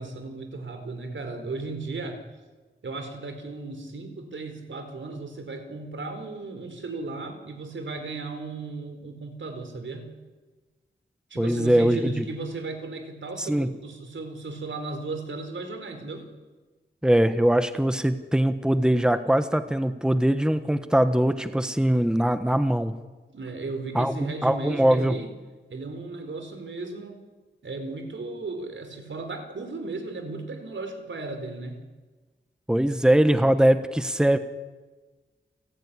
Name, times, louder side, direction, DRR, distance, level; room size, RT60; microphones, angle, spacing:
voice 1, 0.0-2.2 2.8-10.1 11.3-16.3 23.3-25.3 25.7-27.2 27.6-31.8, right 3 dB, 85° right, 7 dB, 4.4 m, -35 dB
voice 2, 11.4-12.2 13.4-13.7 17.0-22.9 23.9-25.2 32.7-34.4, right 1 dB, 5° right, 10 dB, 1.3 m, -22 dB
29.5 x 16.5 x 9.9 m, 1.3 s
wide cardioid pair, 110°, 19 cm